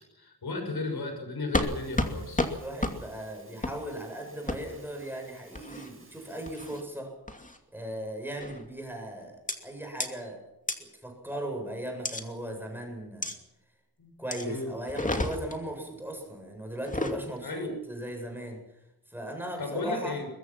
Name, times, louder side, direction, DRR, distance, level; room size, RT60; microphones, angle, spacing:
voice 1, 0.2-2.5 14.0-14.1 14.4-14.7 17.4-17.8 19.6-20.3, left 2 dB, 75° left, 5 dB, 6.5 m, -34 dB
sound 1, 1.5-1.7 2.0-2.1 2.4-2.5 2.8-3.0 3.6-3.8 4.5-4.6 5.5-5.9 6.5-6.8 7.3-7.6 8.4-8.7 9.5-9.6 10.0-10.1 10.7-10.8 12.0-12.2 13.2-13.4 14.3-14.5 14.9-15.6 16.8-17.2, left 2 dB, 20° left, 2.6 m, -30 dB
sound 2, 1.6-6.8, right 2 dB, 35° right, 7.0 m, -56 dB
voice 2, 2.5-7.1 7.7-10.5 10.8-13.3 14.2-18.6 19.1-20.2, right 1 dB, 5° right, 2 dB, 7.9 m, -38 dB
22.5 x 22.5 x 6.0 m, 0.91 s
wide cardioid pair, 115°, 38 cm